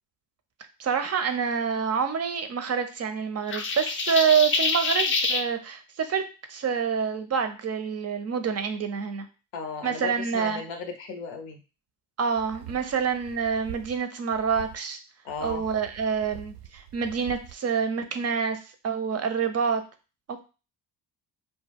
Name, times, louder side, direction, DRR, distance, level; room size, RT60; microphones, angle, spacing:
voice 1, 0.8-6.2 6.5-9.3 9.8-10.6 12.2-15.0 15.4-18.6 18.8-19.8, right 6 dB, 35° right, 8 dB, 0.4 m, -27 dB
sound 1, 3.5-5.5, left 3 dB, 25° left, 0.4 m, -26 dB
voice 2, 9.5-11.6 15.2-15.6, left 4 dB, 90° left, 4 dB, 0.6 m, -35 dB
sound 2, 12.4-14.0 14.3-14.8 15.3-17.5, right 10 dB, 75° right, 0.6 m, -45 dB
2.1 x 2.1 x 3.3 m, 0.32 s
hypercardioid pair, 50°, 50 cm